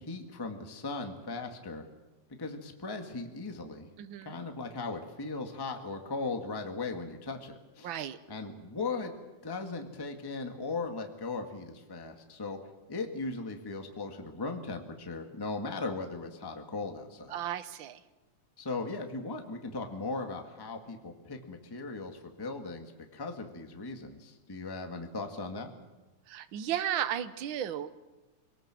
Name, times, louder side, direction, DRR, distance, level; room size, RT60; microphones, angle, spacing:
voice 1, 0.0-1.9 2.4-3.9 4.2-8.0 8.3-9.1 9.4-12.6 12.9-17.4 18.6-25.7, left 3 dB, 10° left, 4 dB, 1.2 m, -38 dB
voice 2, 4.0-4.3 7.8-8.2 17.3-18.0 26.3-27.9, right 10 dB, 60° right, 11 dB, 1.3 m, -34 dB
26.0 x 18.5 x 7.7 m, 1.1 s
omnidirectional pair, 3.4 m